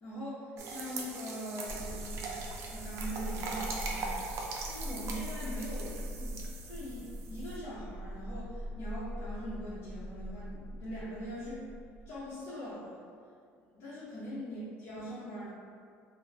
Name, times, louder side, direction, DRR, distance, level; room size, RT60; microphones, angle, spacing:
voice 1, 0.0-11.7 12.1-13.0 13.7-15.5, equal, 50° left, -12 dB, 0.8 m, -42 dB
sound 1, 0.6-7.6, right 3 dB, 60° right, 0.4 m, -41 dB
sound 2, 1.7-12.3, equal, 35° right, 0.8 m, -42 dB
2.3 x 2.0 x 3.2 m, 2.3 s
supercardioid pair, 105°, 6 cm